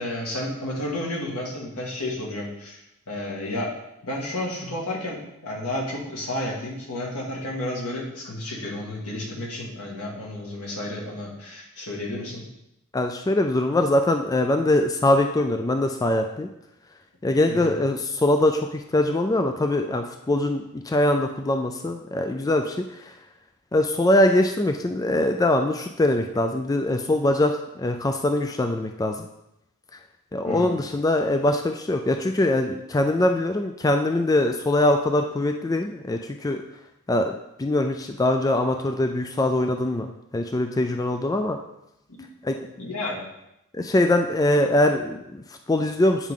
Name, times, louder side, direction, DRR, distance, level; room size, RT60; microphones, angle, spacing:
voice 1, 0.0-2.8 3.1-3.7 4.0-12.4 17.5-17.7 30.4-30.8 42.2-42.3 42.8-43.3, left 1 dB, 85° left, -2 dB, 1.9 m, -31 dB
voice 2, 12.9-16.5 17.2-23.1 23.7-29.3 30.3-36.6 37.1-37.3 37.6-41.6 42.4-42.6 43.7-46.3, left 1 dB, 15° left, 5 dB, 0.3 m, -22 dB
9.1 x 4.7 x 3.7 m, 0.85 s
head